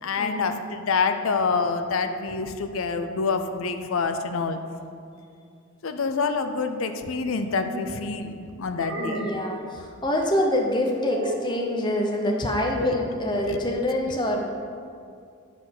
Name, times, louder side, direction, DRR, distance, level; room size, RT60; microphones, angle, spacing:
voice 1, 0.0-4.6 5.8-9.3 12.8-13.0 13.4-13.6, left 4 dB, 75° left, 8 dB, 0.5 m, -27 dB
sound 1, 7.2-8.0 8.7-9.6 11.1-11.6, right 2 dB, 75° right, 0.9 m, -35 dB
voice 2, 9.0-14.5, left 1 dB, 20° left, 1 dB, 0.7 m, -26 dB
10.0 x 4.0 x 6.5 m, 2.4 s
head